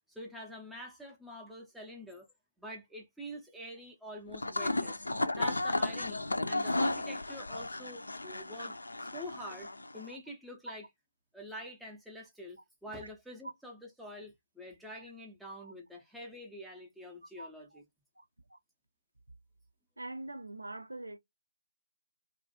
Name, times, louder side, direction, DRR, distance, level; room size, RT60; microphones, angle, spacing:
voice 1, 0.1-2.3 2.6-5.0 5.4-10.9 11.3-17.8, equal, ahead, 0.5 m, -46 dB
sound 1, 4.3-10.1, left 2 dB, 70° left, 0.4 m, -34 dB
voice 2, 20.0-21.2, right 2 dB, 75° right, 0.5 m, -43 dB
2.3 x 2.1 x 2.6 m
figure-of-eight pair, 150°, 0 cm